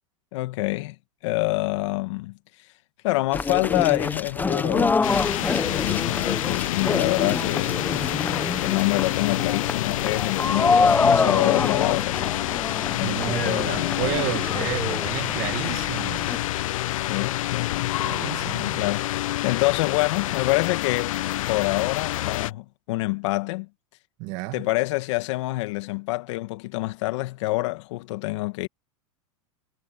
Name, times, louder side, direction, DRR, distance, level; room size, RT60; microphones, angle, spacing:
voice 1, 0.3-1.0 1.2-2.4 3.0-5.0 5.6-7.8 8.6-12.5 13.0-14.3 16.9-18.0 18.5-21.2 21.5-23.7 24.5-28.7, left 21 dB, 60° left, 1.9 m, -26 dB
sound 1, 3.3-16.4, left 4 dB, 10° left, 0.9 m, -26 dB
sound 2, 5.0-22.5, left 15 dB, 80° left, 0.4 m, -27 dB
voice 2, 13.0-16.3 18.0-18.9 24.2-24.7, right 23 dB, 50° right, 1.9 m, -31 dB
hypercardioid pair, 130°, 17 cm